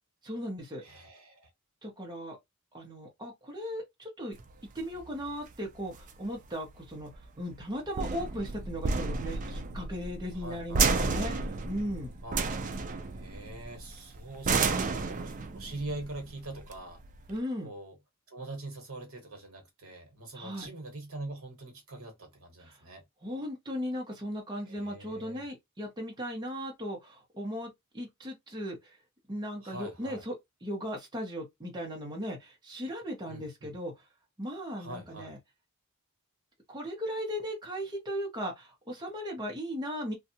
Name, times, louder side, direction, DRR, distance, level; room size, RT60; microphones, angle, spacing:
voice 1, 0.2-0.8 1.8-2.4 2.7-4.4 4.7-12.1 17.3-17.7 20.3-20.7 22.6-22.8 23.2-29.0 29.3-30.3 30.6-34.0 34.4-35.4 36.7-40.1, equal, 20° right, 0.8 m, -37 dB
voice 2, 0.8-1.5 10.3-10.8 12.2-12.4 13.1-17.0 17.6-18.0 18.3-23.0 24.6-25.4 29.6-30.2 33.3-33.7 34.8-35.3, right 2 dB, 65° right, 1.1 m, -43 dB
sound 1, 4.4-17.4, right 4 dB, 35° right, 0.4 m, -32 dB
2.6 x 2.3 x 2.7 m
head